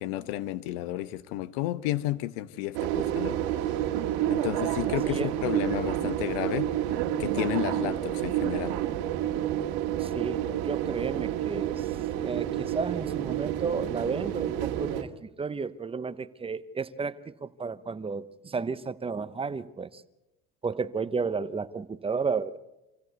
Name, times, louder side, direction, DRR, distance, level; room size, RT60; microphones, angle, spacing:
voice 1, 0.0-3.4 4.3-6.7 7.2-8.7, left 14 dB, 85° left, 1.0 m, -32 dB
sound 1, 2.7-15.0, right 12 dB, 80° right, 1.8 m, -29 dB
voice 2, 10.0-11.9 12.2-15.1 15.4-20.0 20.6-22.6, right 5 dB, 20° right, 0.8 m, -32 dB
26.0 x 16.0 x 8.2 m
supercardioid pair, 110°, 29 cm